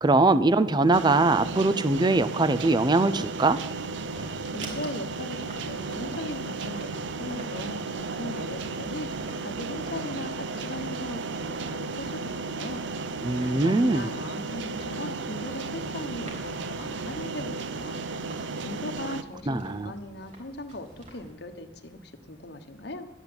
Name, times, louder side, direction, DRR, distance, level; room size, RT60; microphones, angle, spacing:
voice 1, 0.0-3.6 13.2-14.1 19.5-19.9, right 2 dB, 25° right, 14 dB, 0.5 m, -22 dB
sound 1, 0.9-19.2, right 4 dB, 70° right, 0.7 m, -34 dB
sound 2, 3.5-21.3, right 1 dB, 40° right, 3.8 m, -49 dB
voice 2, 4.4-12.9 13.4-18.0 18.6-23.1, left 1 dB, 60° left, 6 dB, 1.2 m, -39 dB
12.0 x 8.3 x 8.8 m, 1.0 s
head